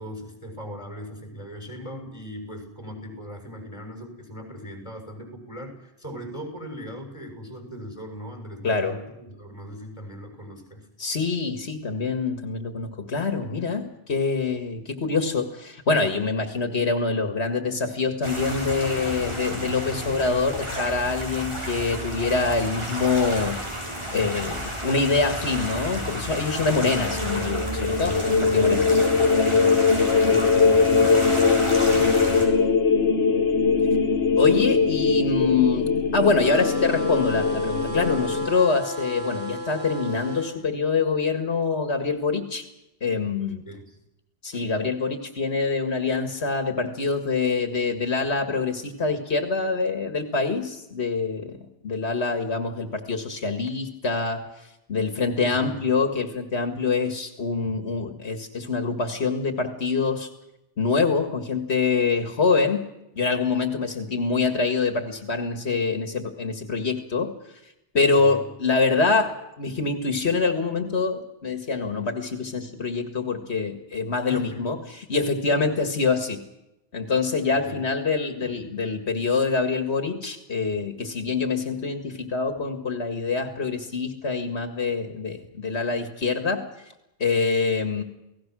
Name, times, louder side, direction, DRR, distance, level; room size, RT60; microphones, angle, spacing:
voice 1, 0.0-10.9 28.2-32.5 43.6-44.0 55.5-55.9 57.6-57.7 68.1-68.4 74.3-74.8 77.5-77.8, equal, 25° left, 3 dB, 6.8 m, -39 dB
voice 2, 8.6-9.0 11.0-23.6 24.1-28.9 34.4-42.7 43.0-43.6 44.4-51.6 51.8-60.3 60.8-62.8 63.2-67.3 67.6-76.4 76.9-86.6 87.2-88.0, left 4 dB, 85° left, 6 dB, 2.2 m, -25 dB
sound 1, 18.2-32.5, equal, 25° right, 7.3 m, -32 dB
sound 2, 26.5-38.5, left 5 dB, 70° left, 1.4 m, -21 dB
sound 3, 36.4-40.5, right 1 dB, 80° right, 6.3 m, -34 dB
29.5 x 18.5 x 6.2 m, 0.91 s
omnidirectional pair, 1.1 m